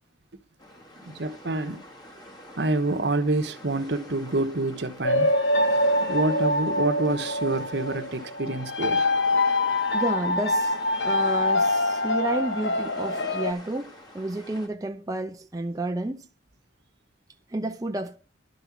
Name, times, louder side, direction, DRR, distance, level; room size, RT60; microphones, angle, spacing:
sound 1, 0.6-14.7, equal, 25° left, 1.7 m, -47 dB
voice 1, 1.1-1.8 2.6-5.3 6.0-9.1, right 2 dB, 70° right, 1.1 m, -27 dB
sound 2, 5.0-13.5, left 2 dB, 80° left, 1.0 m, -24 dB
voice 2, 9.9-16.3 17.5-18.2, right 2 dB, 20° right, 0.5 m, -31 dB
11.5 x 5.4 x 7.3 m
head